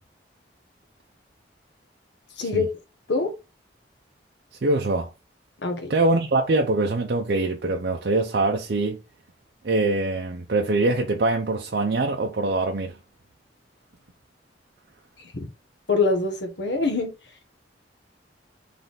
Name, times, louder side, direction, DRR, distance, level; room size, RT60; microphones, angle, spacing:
voice 1, 2.4-2.7 3.1-3.3 5.6-5.9 15.3-15.5 15.9-17.1, left 3 dB, 75° left, 1.1 m, -24 dB
voice 2, 4.6-5.1 5.9-9.0 9.6-13.0, right 2 dB, 60° right, 0.6 m, -23 dB
3.8 x 3.3 x 3.9 m
head